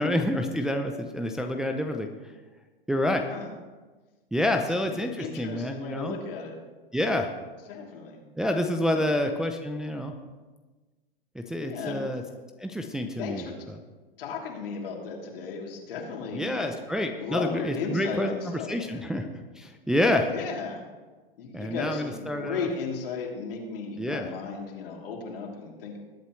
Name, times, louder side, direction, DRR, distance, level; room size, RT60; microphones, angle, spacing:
voice 1, 0.0-2.1 2.9-3.3 4.3-6.2 6.9-7.3 8.4-10.1 11.4-12.2 12.6-13.4 16.3-19.3 19.6-20.3 21.5-22.7 24.0-24.3, left 1 dB, ahead, 3 dB, 0.4 m, -28 dB
voice 2, 4.9-6.6 7.7-8.2 8.9-9.0 11.6-12.1 13.2-13.6 14.2-16.7 17.1-19.0 20.2-20.8 21.3-26.0, left 5 dB, 70° left, -1 dB, 3.1 m, -35 dB
20.0 x 8.2 x 3.1 m, 1.3 s
hypercardioid pair, 125°, 29 cm